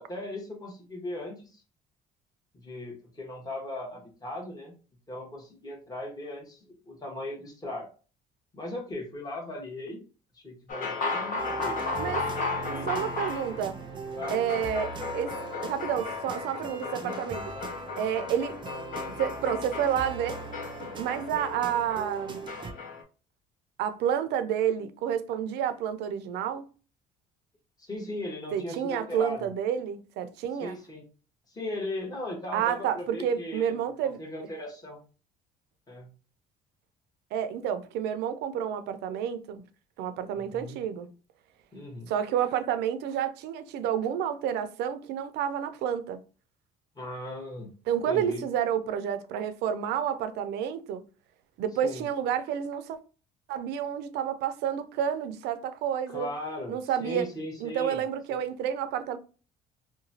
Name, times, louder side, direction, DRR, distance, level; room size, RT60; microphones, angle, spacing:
voice 1, 0.0-1.6 2.5-4.7 5.1-7.9 8.5-10.0 10.3-11.8 12.6-12.9 13.5-13.6 14.1-14.4 16.8-17.1 17.5-17.7 27.8-29.5 30.6-31.0 31.5-35.0 35.9-36.1 40.3-40.8 41.7-42.1 46.9-47.7 48.1-48.4 51.8-52.0 56.1-58.0 58.3-58.4, left 1 dB, 20° left, 1.2 m, -38 dB
sound 1, 10.7-23.0, left 4 dB, 55° left, 1.0 m, -35 dB
sound 2, 11.4-22.7, right 4 dB, 30° right, 0.4 m, -40 dB
voice 2, 12.9-13.8 14.3-15.3 15.6-17.4 18.0-18.5 19.2-20.4 20.8-22.4 23.8-26.6 28.5-30.7 32.5-34.2 37.3-39.6 40.0-41.1 42.1-46.2 47.9-51.0 51.6-53.0 53.5-56.3 56.7-57.3 57.6-59.2, right 9 dB, 85° right, 0.5 m, -30 dB
2.9 x 2.2 x 2.7 m
cardioid pair, 110°, 17 cm